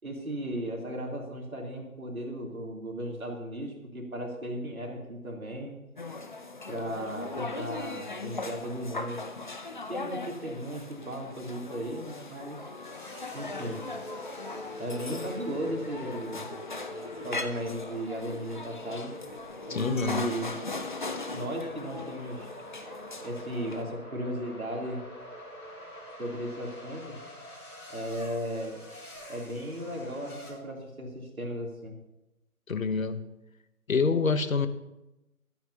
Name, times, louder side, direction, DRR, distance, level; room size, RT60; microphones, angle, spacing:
voice 1, 0.0-5.8 6.7-9.2 9.9-12.6 13.3-13.8 14.8-16.4 17.2-19.2 19.7-20.5 21.3-22.5 23.2-25.0 26.2-27.2 27.9-28.8 29.3-31.9, right 1 dB, 70° right, 0 dB, 3.1 m, -36 dB
sound 1, 6.0-23.8, left 3 dB, 35° left, 0.6 m, -39 dB
sound 2, 12.8-30.5, equal, 80° left, 4.7 m, -45 dB
voice 2, 19.7-20.4 32.7-33.2 33.9-34.7, left 4 dB, 65° left, 11 dB, 1.0 m, -27 dB
21.5 x 9.1 x 2.8 m, 0.95 s
figure-of-eight pair, 145°, 45 cm